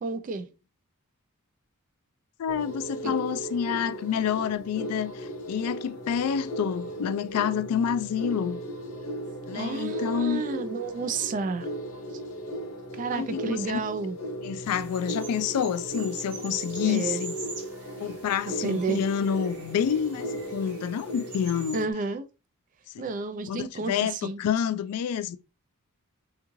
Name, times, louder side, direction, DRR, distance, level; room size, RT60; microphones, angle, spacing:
voice 1, 0.0-0.5 3.0-3.1 9.5-11.7 12.9-14.2 16.8-17.2 18.6-19.0 21.7-22.2 23.0-24.4, right 4 dB, 35° right, 0.3 m, -31 dB
voice 2, 2.4-8.6 9.5-10.4 13.1-13.8 14.4-17.3 18.0-21.9 22.9-23.0 23.5-25.4, left 8 dB, 85° left, 0.3 m, -28 dB
sound 1, 2.5-21.9, right 1 dB, 65° left, 0.7 m, -36 dB
sound 2, 14.6-21.8, right 3 dB, 85° right, 1.0 m, -44 dB
3.5 x 2.3 x 3.0 m
head